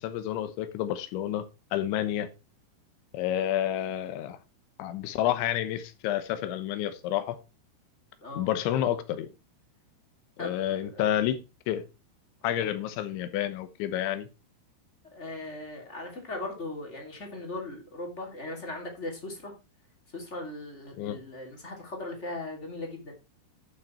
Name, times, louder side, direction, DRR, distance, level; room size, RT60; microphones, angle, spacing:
voice 1, 0.0-1.5 1.7-2.3 3.1-4.4 4.8-7.4 8.3-9.3 10.4-11.4 11.7-11.8 12.4-14.3 21.0-21.2, left 11 dB, 75° left, 3.3 m, -29 dB
voice 2, 10.4-11.0 12.6-12.8 15.1-19.5 20.1-23.1, left 2 dB, 20° left, 2.0 m, -38 dB
11.5 x 6.7 x 4.3 m
omnidirectional pair, 5.5 m